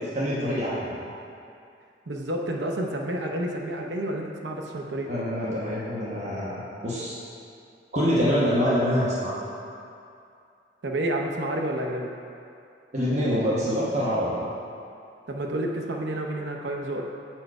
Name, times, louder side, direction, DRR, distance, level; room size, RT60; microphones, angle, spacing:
voice 1, 0.1-1.0 5.1-7.2 7.9-9.4 12.9-14.4, equal, 40° right, -7 dB, 1.1 m, -25 dB
voice 2, 2.1-5.1 10.8-12.1 15.3-17.1, right 1 dB, 85° right, 1 dB, 0.7 m, -29 dB
7.7 x 4.4 x 4.7 m, 2.5 s
head